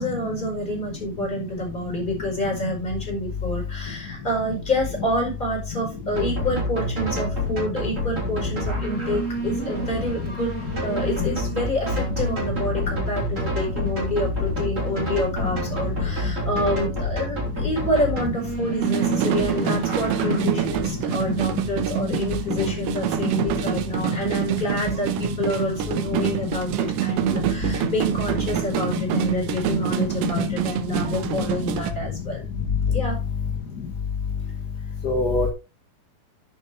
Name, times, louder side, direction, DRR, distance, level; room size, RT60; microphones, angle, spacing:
voice 1, 0.0-10.5 10.8-32.4 32.9-33.2, equal, 10° left, 0 dB, 4.9 m, -28 dB
sound 1, 6.1-20.4, equal, 20° right, 4.0 m, -28 dB
sound 2, 18.8-31.9, right 13 dB, 90° right, 3.3 m, -26 dB
voice 2, 22.1-22.6 22.9-24.0 26.1-26.5 27.3-27.4 27.8-27.9 28.9-29.2 29.7-29.8 30.2-30.5 31.1-31.8 35.0-35.5, left 5 dB, 50° left, 2 dB, 1.1 m, -28 dB
13.0 x 6.6 x 3.3 m, 0.28 s
omnidirectional pair, 4.8 m